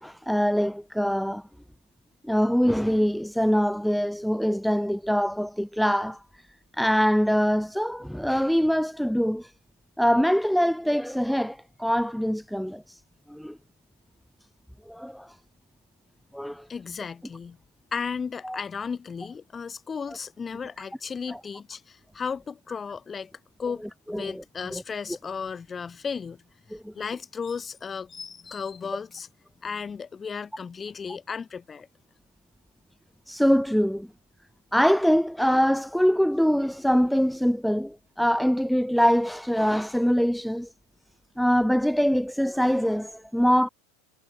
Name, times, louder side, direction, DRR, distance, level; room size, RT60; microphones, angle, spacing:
voice 1, 0.0-1.4 2.2-6.4 6.7-9.5 10.0-13.0 13.3-13.6 14.9-15.3 16.3-16.7 18.4-18.6 21.3-21.4 24.1-24.4 24.7-24.8 26.7-26.9 33.3-34.1 34.7-40.7 41.4-43.7, equal, ahead, 0.5 m, -24 dB
voice 2, 16.7-17.6 17.9-23.3 23.6-26.4 26.7-29.3 29.6-31.9, left 6 dB, 20° left, 1.1 m, -35 dB
figure-of-eight pair, 85°, 0 cm